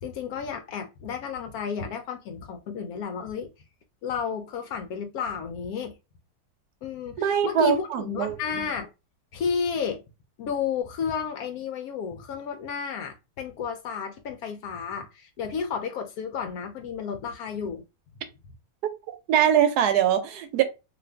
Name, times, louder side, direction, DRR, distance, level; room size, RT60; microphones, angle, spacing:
voice 1, 0.0-3.5 4.0-5.9 6.8-8.9 9.3-10.0 10.4-17.8, left 6 dB, 75° left, 1.0 m, -32 dB
voice 2, 7.2-8.4 19.1-20.6, right 9 dB, 90° right, 1.2 m, -22 dB
2.7 x 2.5 x 3.3 m
omnidirectional pair, 1.6 m